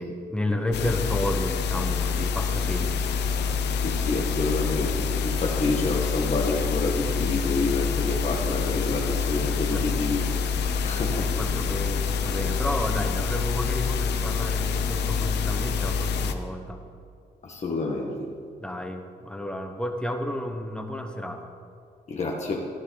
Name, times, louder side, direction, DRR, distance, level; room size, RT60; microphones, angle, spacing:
voice 1, 0.0-3.1 9.7-9.9 10.7-16.8 18.6-21.5, left 1 dB, 5° left, 4 dB, 1.3 m, -31 dB
sound 1, 0.7-16.3, left 5 dB, 85° left, 0.9 m, -27 dB
voice 2, 3.8-11.3 17.4-18.1 22.1-22.7, left 3 dB, 40° left, -2 dB, 1.6 m, -28 dB
15.0 x 10.5 x 4.1 m, 2.4 s
cardioid pair, 105°, 17 cm